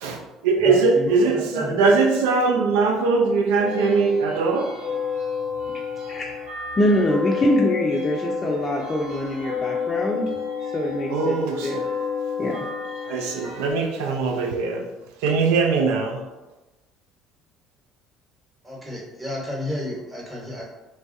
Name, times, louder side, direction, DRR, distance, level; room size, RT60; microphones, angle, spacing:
voice 1, 0.0-4.7 11.1-11.8 13.1-14.9 15.2-16.2, right 4 dB, 80° right, 3 dB, 0.3 m, -21 dB
voice 2, 0.6-2.1 18.6-20.6, left 1 dB, 20° right, -4 dB, 1.2 m, -32 dB
sound 1, 3.6-13.7, left 6 dB, 65° right, 0.9 m, -30 dB
voice 3, 6.8-10.3 10.7-11.8 12.4-12.6, left 1 dB, 30° left, -3 dB, 0.4 m, -23 dB
3.1 x 2.2 x 2.6 m, 1.1 s
hypercardioid pair, 70°, 0 cm